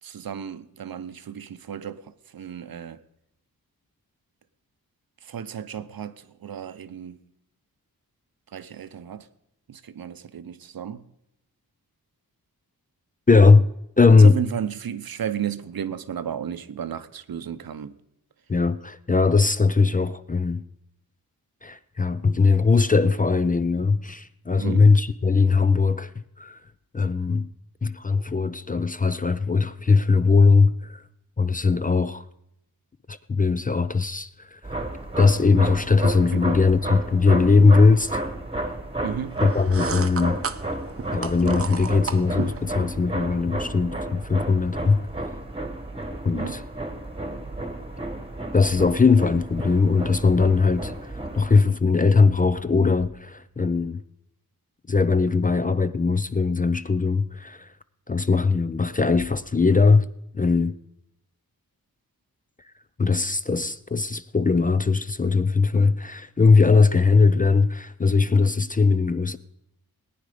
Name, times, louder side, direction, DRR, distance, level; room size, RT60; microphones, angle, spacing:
voice 1, 0.0-3.0 5.2-7.2 8.5-9.3 9.7-11.1 14.2-18.0 24.5-24.9 36.3-36.4 39.0-39.4 46.3-46.6, right 8 dB, 70° right, 0.8 m, -33 dB
voice 2, 13.3-13.7 14.0-14.4 18.5-20.6 21.6-26.1 26.4-26.6 26.9-27.5 27.8-31.0 31.4-32.2 33.1-34.6 35.2-38.2 39.4-40.4 41.1-45.0 46.2-46.6 48.5-54.0 54.9-57.7 58.1-60.1 60.3-60.7 63.0-69.4, left 4 dB, 25° left, 0.4 m, -20 dB
sound 1, 34.6-51.6, right 1 dB, 15° right, 1.3 m, -32 dB
sound 2, 39.4-42.7, right 5 dB, 40° right, 0.7 m, -33 dB
19.0 x 9.6 x 5.0 m
wide cardioid pair, 110°, 37 cm